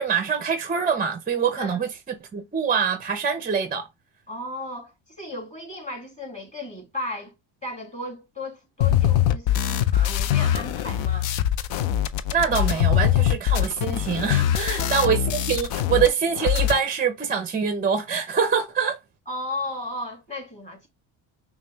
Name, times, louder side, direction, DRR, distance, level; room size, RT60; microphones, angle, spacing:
voice 1, 0.0-3.9 12.3-19.0, right 6 dB, 20° right, 0.5 m, -24 dB
voice 2, 4.3-7.3 7.6-11.3 14.7-15.2 19.3-20.9, left 1 dB, 15° left, 2.5 m, -35 dB
sound 1, 8.8-16.1 16.3-16.8, left 11 dB, 65° left, 0.6 m, -22 dB
5.1 x 2.3 x 2.9 m
cardioid pair, 90°, 49 cm